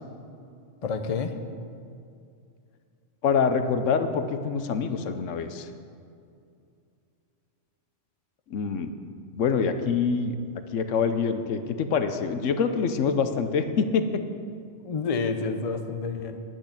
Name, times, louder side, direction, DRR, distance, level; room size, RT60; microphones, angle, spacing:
voice 1, 0.8-1.4 14.8-16.4, left 4 dB, 40° left, 7 dB, 0.6 m, -29 dB
voice 2, 3.2-5.7 8.5-8.9 9.3-10.4 10.7-14.2, left 6 dB, 85° left, 9 dB, 1.1 m, -25 dB
10.5 x 6.3 x 8.4 m, 2.4 s
omnidirectional pair, 1.2 m